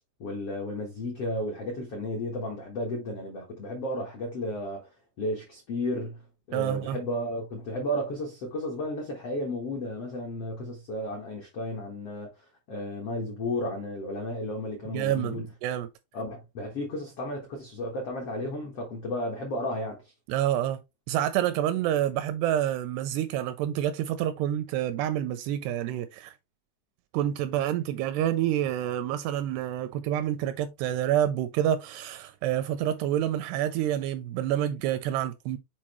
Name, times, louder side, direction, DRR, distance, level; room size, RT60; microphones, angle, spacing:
voice 1, 0.2-4.9 5.2-12.3 12.7-15.5 16.1-20.0, left 1 dB, 75° left, 1.3 m, -33 dB
voice 2, 6.5-7.0 14.9-15.9 20.3-20.8 21.1-26.3 27.1-35.6, right 11 dB, 85° right, 2.4 m, -28 dB
7.5 x 4.3 x 3.0 m
omnidirectional pair, 5.1 m